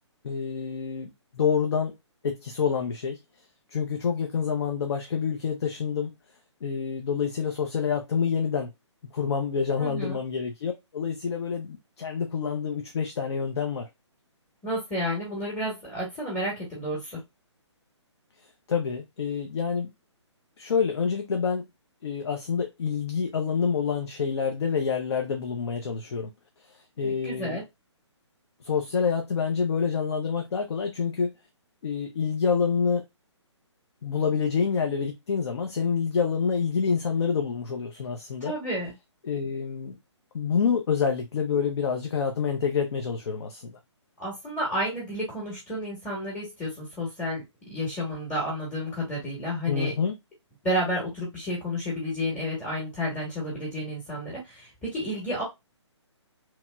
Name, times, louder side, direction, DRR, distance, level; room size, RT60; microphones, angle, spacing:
voice 1, 0.2-1.9 2.2-3.2 3.7-6.1 6.6-8.7 9.1-13.9 18.7-19.9 20.6-21.7 22.0-26.3 27.0-27.6 28.6-31.3 31.8-33.0 34.0-38.5 39.3-39.9 40.3-43.8 49.7-50.1, left 6 dB, 60° left, 0.6 m, -27 dB
voice 2, 9.8-10.2 14.6-17.2 27.0-27.6 38.4-38.9 44.2-47.4 47.7-49.9 50.6-55.4, equal, 10° left, 1.0 m, -31 dB
3.0 x 2.8 x 2.2 m
hypercardioid pair, 150°, 15 cm